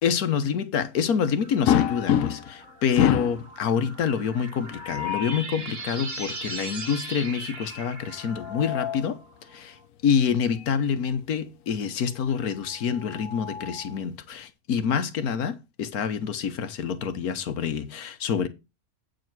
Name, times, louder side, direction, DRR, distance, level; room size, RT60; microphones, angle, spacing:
voice 1, 0.0-9.2 9.5-9.7 10.0-18.5, left 7 dB, 90° left, 1.5 m, -27 dB
sound 1, 1.4-9.6, right 3 dB, 70° right, 2.9 m, -39 dB
sound 2, 1.7-2.6 3.0-3.4 4.7-5.4 8.1-9.1 10.5-10.7 11.1-11.2 12.7-14.0, left 10 dB, 70° left, 1.1 m, -27 dB
8.3 x 5.2 x 6.0 m
omnidirectional pair, 1.5 m